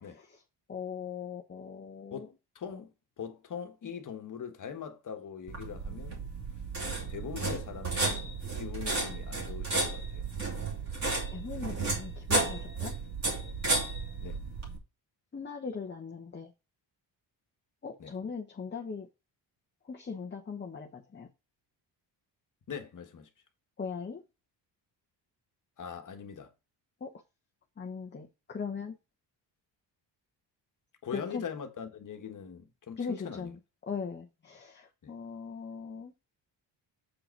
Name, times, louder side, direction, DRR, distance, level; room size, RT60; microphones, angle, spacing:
voice 1, 0.0-0.4 0.7-2.3 11.3-12.9 15.3-16.5 17.8-19.1 19.9-21.3 23.8-24.2 27.0-27.2 27.8-29.0 31.1-31.4 33.0-33.5 33.8-36.1, left 5 dB, 25° left, 1.0 m, -39 dB
voice 2, 2.1-2.9 3.2-6.2 7.1-10.3 14.2-14.4 18.0-18.1 22.7-23.3 25.8-26.5 31.0-33.5 35.0-35.1, left 7 dB, 45° left, 1.5 m, -42 dB
sound 1, 5.5-14.8, right 3 dB, 40° right, 2.7 m, -33 dB
7.6 x 4.8 x 4.6 m
cardioid pair, 100°, 43 cm